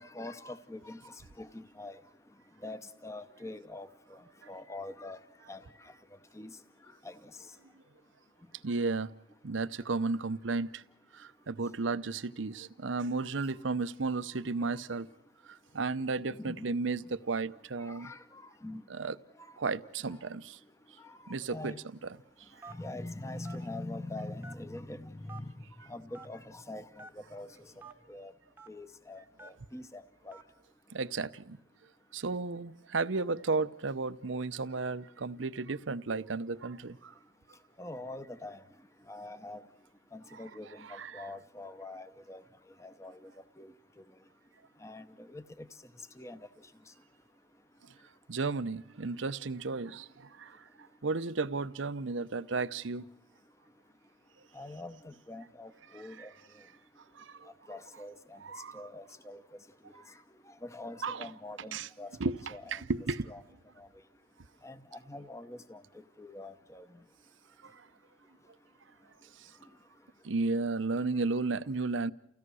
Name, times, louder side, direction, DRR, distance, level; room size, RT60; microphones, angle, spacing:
voice 1, 0.0-2.0 2.6-4.2 4.5-5.2 5.5-5.9 6.3-6.5 7.0-7.3 16.4-16.6 17.8-18.8 19.8-19.9 21.0-21.2 21.5-21.8 22.7-25.5 25.8-27.5 28.1-28.3 28.7-30.4 37.8-38.6 39.1-39.6 40.1-42.4 42.8-43.3 43.6-43.7 44.8-45.7 46.2-46.4 54.5-56.3 57.7-58.4 58.7-59.4 59.9-60.0 60.5-62.1 62.5-62.8 63.3-63.4 63.8-63.9 64.6-65.8 66.2-66.8, left 2 dB, 15° left, 0.7 m, -44 dB
voice 2, 8.6-9.1 9.4-10.8 11.1-15.1 15.4-18.1 18.9-19.2 19.6-20.6 21.3-21.7 22.5-22.6 30.9-31.6 32.1-37.1 40.3-40.4 40.8-41.3 48.3-50.7 51.0-53.0 56.2-56.3 57.1-57.5 58.4-58.8 61.0-61.3 61.7-61.9 62.2-63.3 67.6-67.9 69.4-69.5 70.2-72.1, right 3 dB, 85° right, 0.7 m, -34 dB
Telephone, 22.6-22.9 23.4-23.6 24.4-24.8 25.3-25.4 26.1-26.3 27.0-27.1 27.8-27.9 28.6-28.7 29.4-29.6 30.3-30.5, right 3 dB, 10° right, 0.9 m, -48 dB
30.0 x 16.5 x 6.3 m
head